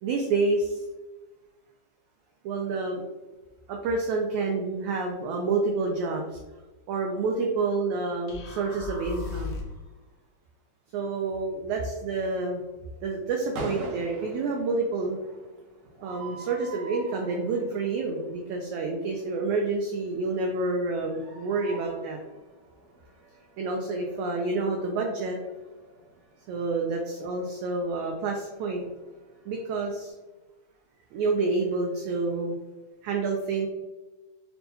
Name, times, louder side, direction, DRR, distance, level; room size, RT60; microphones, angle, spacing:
voice 1, 0.0-0.8 2.4-3.0 3.7-6.4 6.9-9.6 10.9-12.6 13.0-15.2 16.0-22.2 23.6-25.4 26.5-28.8 29.5-30.1 31.1-32.6 33.0-33.7, right 3 dB, 85° right, 1 dB, 1.7 m, -28 dB
sound 1, 8.3-9.9, left 4 dB, 80° left, 1.5 m, -36 dB
sound 2, 13.3-30.1, right 2 dB, 70° right, 1.9 m, -45 dB
5.8 x 2.2 x 2.7 m, 1.1 s
omnidirectional pair, 3.9 m